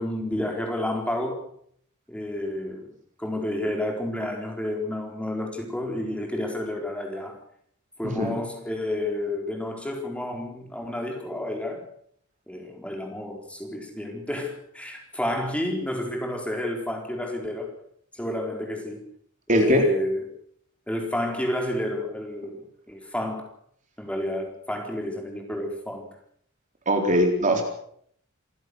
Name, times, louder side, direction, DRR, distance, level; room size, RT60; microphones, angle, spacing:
voice 1, 0.0-1.4 2.1-2.9 3.2-7.4 8.0-11.8 12.5-17.7 18.1-19.0 19.5-20.2 20.9-22.6 22.9-23.4 24.0-26.1, left 1 dB, 5° left, 2 dB, 4.3 m, -30 dB
voice 2, 8.0-8.3 19.5-19.8 26.9-27.6, equal, 35° right, 3 dB, 4.1 m, -21 dB
27.0 x 15.5 x 6.4 m, 0.66 s
head